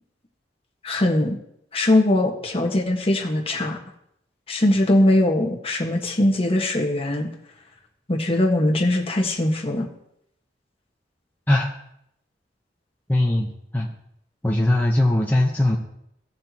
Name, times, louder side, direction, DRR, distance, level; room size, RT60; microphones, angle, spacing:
voice 1, 0.8-1.3 1.7-3.8 4.5-7.3 8.1-9.9, left 1 dB, 35° left, 1 dB, 1.4 m, -21 dB
voice 2, 13.1-13.9 14.4-15.8, left 1 dB, 10° left, -3 dB, 0.9 m, -20 dB
16.5 x 6.7 x 2.9 m, 0.76 s
head